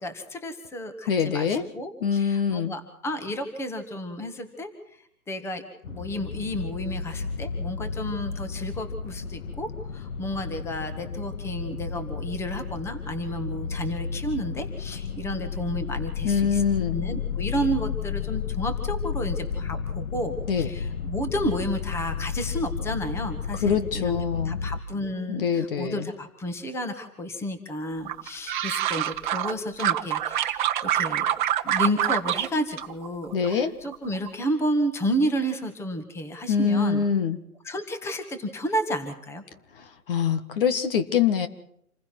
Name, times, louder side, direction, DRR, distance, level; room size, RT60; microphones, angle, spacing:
voice 1, 0.0-4.7 5.3-5.6 5.9-16.6 16.9-24.1 24.4-31.2 31.6-37.0 37.6-39.4, equal, 5° left, 8 dB, 1.9 m, -31 dB
voice 2, 1.1-1.7 2.0-2.7 16.2-17.0 20.5-20.7 23.6-24.6 25.3-26.1 33.3-33.7 36.5-37.4 40.1-41.5, left 6 dB, 40° left, 10 dB, 1.8 m, -24 dB
sound 1, 5.8-24.8, left 6 dB, 60° left, 1.8 m, -32 dB
sound 2, 28.1-29.5 29.8-32.5 32.8-33.5 33.9-34.3, right 11 dB, 35° right, 1.3 m, -26 dB
27.5 x 15.5 x 6.1 m, 0.71 s
hypercardioid pair, 150°, 44 cm